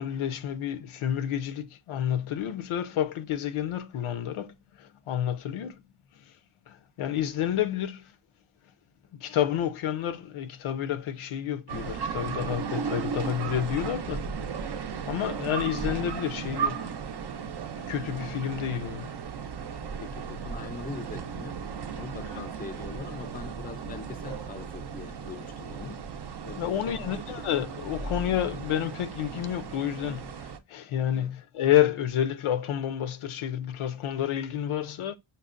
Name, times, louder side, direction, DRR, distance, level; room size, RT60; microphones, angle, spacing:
voice 1, 0.0-5.8 6.1-6.3 6.7-8.1 9.1-14.6 15.1-16.9 17.8-19.1 22.3-22.4 26.5-35.2, left 10 dB, 85° left, 0.6 m, -30 dB
sound 1, 11.7-30.6, right 6 dB, 55° right, 0.5 m, -35 dB
voice 2, 20.0-21.6 21.9-26.0 26.4-27.2 31.1-31.3, left 5 dB, 20° left, 0.4 m, -42 dB
5.3 x 2.1 x 2.4 m
cardioid pair, 80°, 48 cm